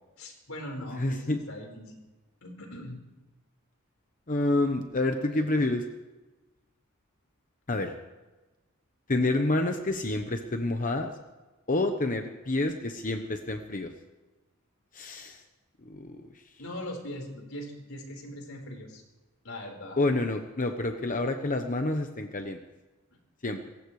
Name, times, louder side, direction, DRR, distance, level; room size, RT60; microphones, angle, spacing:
voice 1, 0.2-2.0 2.4-3.0 5.3-5.5 16.6-19.0 19.4-20.0, left 1 dB, 85° left, 1 dB, 4.7 m, -40 dB
voice 2, 1.0-1.4 4.3-5.9 7.7-7.9 9.1-11.1 11.7-13.9 14.9-15.4 15.8-16.3 20.0-22.6 23.4-23.6, left 2 dB, 40° left, 5 dB, 1.0 m, -28 dB
28.0 x 15.5 x 3.3 m, 1.1 s
head